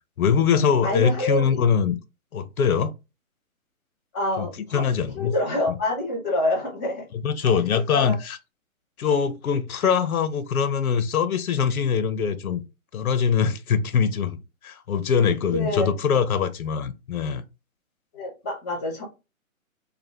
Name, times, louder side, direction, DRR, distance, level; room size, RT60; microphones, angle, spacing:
voice 1, 0.2-2.0 2.3-2.9 4.4-5.3 7.2-8.4 9.0-12.6 12.9-14.4 14.6-17.4, left 7 dB, 90° left, 0.6 m, -23 dB
voice 2, 0.8-1.6 4.1-7.1 8.0-8.1 15.5-15.9 18.1-19.0, left 1 dB, 15° left, 0.5 m, -27 dB
2.5 x 2.3 x 3.1 m
hypercardioid pair, 155°, 42 cm